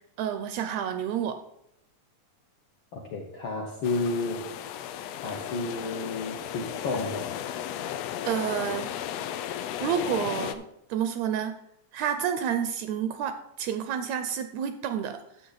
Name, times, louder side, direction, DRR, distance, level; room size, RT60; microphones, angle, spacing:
voice 1, 0.2-1.4 8.2-8.9 9.8-10.6 10.9-11.5 11.9-15.2, right 8 dB, 80° right, 9 dB, 1.7 m, -29 dB
voice 2, 2.9-4.5 5.2-7.4, left 3 dB, 65° left, -1 dB, 1.3 m, -31 dB
sound 1, 3.8-10.5, left 10 dB, 90° left, 1.5 m, -35 dB
10.0 x 7.5 x 3.9 m, 0.79 s
omnidirectional pair, 3.5 m